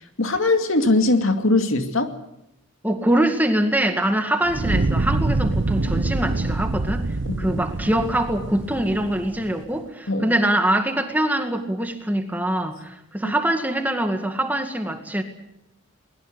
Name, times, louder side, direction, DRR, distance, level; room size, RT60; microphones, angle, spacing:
voice 1, 0.2-2.1 7.3-7.6 10.1-10.3 13.2-13.3, left 2 dB, 80° left, 6 dB, 2.4 m, -21 dB
voice 2, 2.8-7.1 7.4-15.2, right 1 dB, 10° right, 5 dB, 2.0 m, -23 dB
Fire, 4.4-9.6, right 2 dB, 60° right, 0.8 m, -25 dB
22.0 x 21.0 x 8.0 m, 0.83 s
head